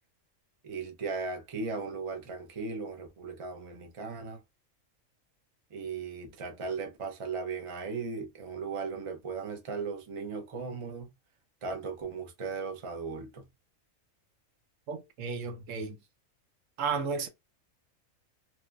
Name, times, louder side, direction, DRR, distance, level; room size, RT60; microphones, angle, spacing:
voice 1, 0.6-4.4 5.7-11.1 11.6-13.5, right 4 dB, 50° right, 0.3 m, -37 dB
voice 2, 14.9-16.0 16.8-17.3, right 5 dB, 75° right, 1.0 m, -33 dB
3.0 x 2.0 x 2.3 m
omnidirectional pair, 1.4 m